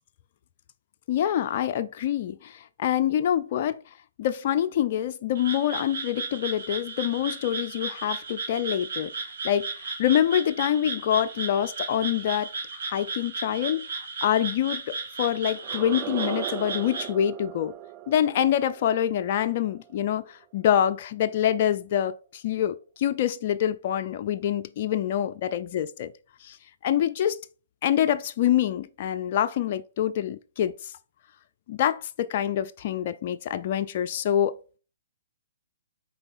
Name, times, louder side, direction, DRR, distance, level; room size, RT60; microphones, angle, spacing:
voice 1, 1.1-3.8 4.2-9.1 9.4-17.7 18.1-26.1 26.4-26.6 26.8-27.4 27.8-30.9 31.7-34.8, left 10 dB, 45° left, 0.4 m, -26 dB
Frog, 5.3-17.1, right 4 dB, 60° right, 2.6 m, -35 dB
sound 1, 15.5-20.4, right 14 dB, 30° right, 0.3 m, -38 dB
4.5 x 3.9 x 5.4 m
hypercardioid pair, 135°, 0 cm